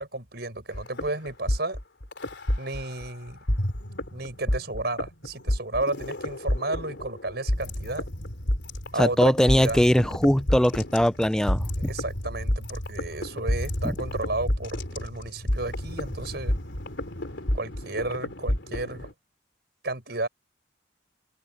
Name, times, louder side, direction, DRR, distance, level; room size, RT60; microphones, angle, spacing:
voice 1, 0.0-1.8 2.6-3.4 4.1-8.1 8.9-9.8 11.8-16.5 17.5-19.1 19.8-20.3, right 2 dB, 55° right, 6.4 m, -32 dB
sound 1, 0.7-3.1 3.5-19.1, left 1 dB, 70° left, 3.7 m, -30 dB
voice 2, 9.0-11.7, equal, 5° left, 0.4 m, -21 dB
open air
head